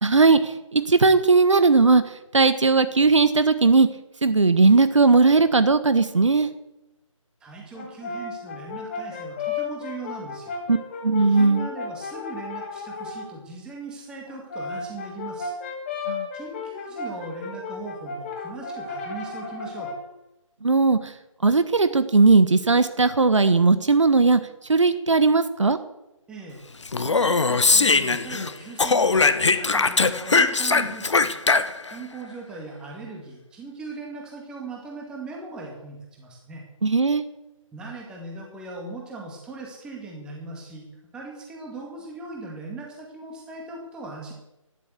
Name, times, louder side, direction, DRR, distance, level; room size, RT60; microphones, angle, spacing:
voice 1, 0.0-2.0 2.3-3.9 4.2-6.5 10.7-10.8 11.0-11.7 16.1-16.3 20.6-21.1 21.4-24.4 24.7-25.8 36.8-37.2, right 4 dB, 60° right, 12 dB, 1.2 m, -18 dB
voice 2, 7.4-10.6 11.2-15.5 16.3-19.9 26.3-26.6 27.1-31.3 31.9-36.7 37.7-40.9 41.1-44.3, right 3 dB, 5° right, -1 dB, 2.0 m, -39 dB
Brass instrument, 7.7-13.3 14.3-20.1, left 4 dB, 20° left, 2.4 m, -34 dB
Speech, 26.9-28.5 28.8-32.0, left 4 dB, 60° left, 1.1 m, -20 dB
12.0 x 11.0 x 8.2 m, 0.93 s
figure-of-eight pair, 155°, 17 cm